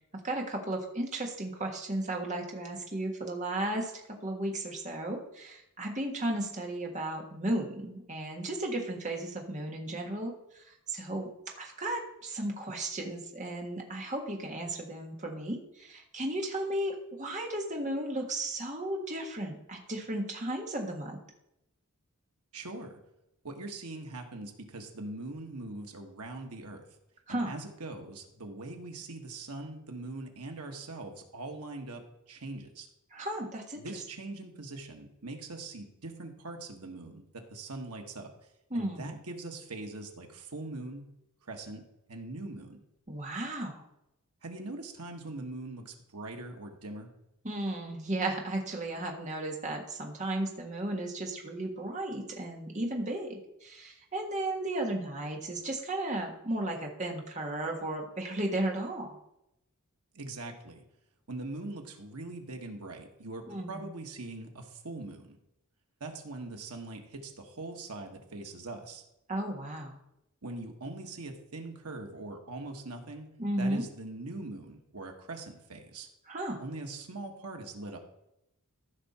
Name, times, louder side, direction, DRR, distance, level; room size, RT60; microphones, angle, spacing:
voice 1, 0.2-3.9 4.2-11.3 11.6-21.2 27.3-27.5 33.1-33.8 38.7-39.1 43.1-43.9 47.4-59.2 63.5-63.8 69.3-70.0 73.4-73.8 76.3-76.6, right 1 dB, 35° right, 1 dB, 1.6 m, -34 dB
voice 2, 22.5-23.0 23.4-26.9 27.3-32.9 33.8-38.3 38.7-41.1 41.5-41.8 42.1-42.8 44.4-47.1 60.1-60.8 61.3-65.4 66.0-69.0 70.4-73.3 73.6-76.1 76.6-78.0, right 2 dB, 90° right, 3 dB, 1.6 m, -42 dB
14.5 x 5.9 x 4.3 m, 0.83 s
head